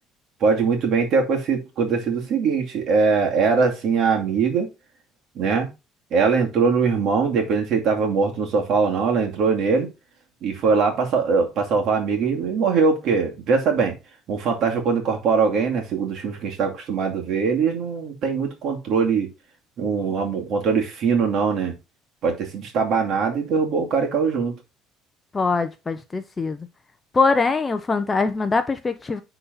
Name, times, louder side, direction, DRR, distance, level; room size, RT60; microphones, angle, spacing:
voice 1, 0.4-4.7 5.4-5.7 6.1-9.9 10.4-14.0 14.3-19.3 19.8-21.7 22.2-24.5, right 5 dB, 50° right, 2.5 m, -22 dB
voice 2, 25.3-26.7 27.1-29.2, left 4 dB, 15° left, 0.6 m, -22 dB
10.0 x 4.0 x 3.9 m
cardioid pair, 155°, 0 cm